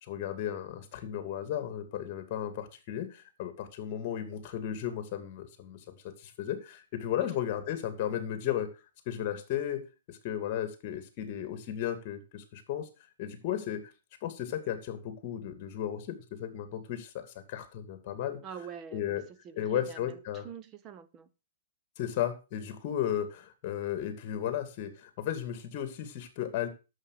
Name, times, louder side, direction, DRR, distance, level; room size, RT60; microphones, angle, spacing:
voice 1, 0.0-8.7 9.1-9.8 10.1-12.9 13.2-13.8 14.2-18.4 18.9-19.2 19.6-20.5 22.0-26.7, left 10 dB, 35° left, 2.5 m, -34 dB
voice 2, 18.4-19.2 19.4-20.2 20.4-21.3, right 8 dB, 20° right, 0.9 m, -44 dB
11.0 x 7.5 x 6.5 m
hypercardioid pair, 160°, 0 cm